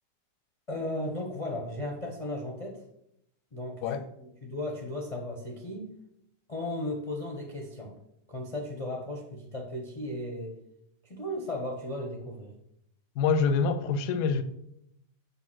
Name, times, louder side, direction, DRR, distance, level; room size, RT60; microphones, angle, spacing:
voice 1, 0.7-2.8 3.5-3.8 4.2-5.9 6.5-8.0 8.3-10.5 11.0-12.5, left 1 dB, 30° left, 0.7 m, -35 dB
voice 2, 13.2-14.4, left 5 dB, 70° left, 1.1 m, -26 dB
6.9 x 3.4 x 6.2 m
omnidirectional pair, 1.9 m